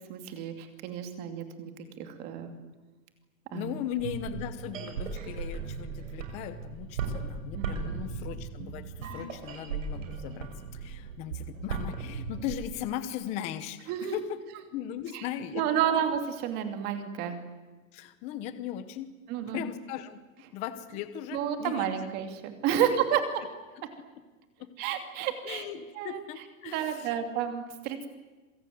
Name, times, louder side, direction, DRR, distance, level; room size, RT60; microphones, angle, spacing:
voice 1, 0.1-1.7 2.0-2.6 3.5-3.7 7.5-7.7 13.9-14.2 15.1-15.2 15.5-17.4 19.3-19.6 21.3-23.4 24.8-25.7 26.0-26.2 26.6-28.1, right 9 dB, 25° right, 8 dB, 2.7 m, -30 dB
voice 2, 3.5-14.4 14.7-15.7 17.9-19.1 19.4-20.2 20.5-21.9 22.8-23.2 24.6-24.7 25.4-27.2, left 10 dB, 15° left, 12 dB, 0.9 m, -38 dB
sound 1, 3.9-12.7, right 5 dB, 70° right, 6.6 m, -37 dB
26.5 x 22.5 x 9.4 m, 1.2 s
supercardioid pair, 175°, 40 cm